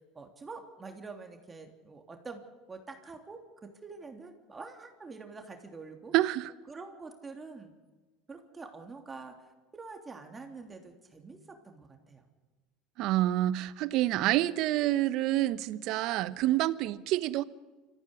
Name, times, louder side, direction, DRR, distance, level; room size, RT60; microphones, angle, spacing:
voice 1, 0.1-2.4 2.7-6.1 6.7-7.7 8.3-9.3 9.7-12.2, right 4 dB, 20° right, 3.2 m, -46 dB
voice 2, 6.1-6.5 13.0-17.4, right 15 dB, 60° right, 1.0 m, -27 dB
26.0 x 15.0 x 9.9 m
hypercardioid pair, 85°, 0 cm